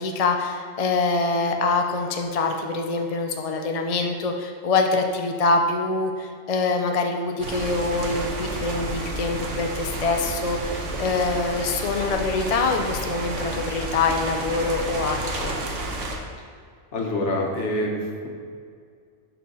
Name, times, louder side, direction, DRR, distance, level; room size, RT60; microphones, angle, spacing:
voice 1, 0.0-15.5, left 3 dB, 45° left, 4 dB, 0.5 m, -25 dB
sound 1, 7.4-16.2, right 2 dB, 70° right, 1.3 m, -31 dB
voice 2, 16.9-18.3, left 1 dB, 60° left, 0 dB, 1.4 m, -26 dB
11.0 x 4.4 x 4.1 m, 2.2 s
omnidirectional pair, 1.4 m